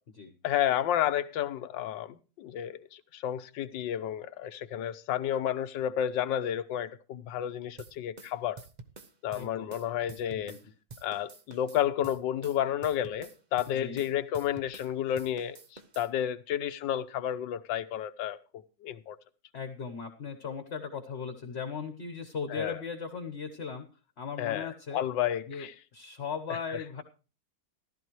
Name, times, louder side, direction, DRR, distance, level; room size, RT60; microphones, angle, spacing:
voice 1, 0.4-8.6 9.2-10.6 11.0-15.6 16.0-18.4 18.8-19.2 22.5-22.8 24.4-25.7, left 10 dB, 85° left, 1.5 m, -31 dB
sound 1, 7.8-10.7 10.9-14.9 15.2-16.1, right 3 dB, 45° right, 0.5 m, -49 dB
voice 2, 9.3-9.7 10.3-10.6 13.7-14.0 19.5-23.9 24.2-25.0 25.5-27.0, left 5 dB, 40° left, 1.2 m, -38 dB
14.5 x 12.5 x 3.1 m
omnidirectional pair, 2.0 m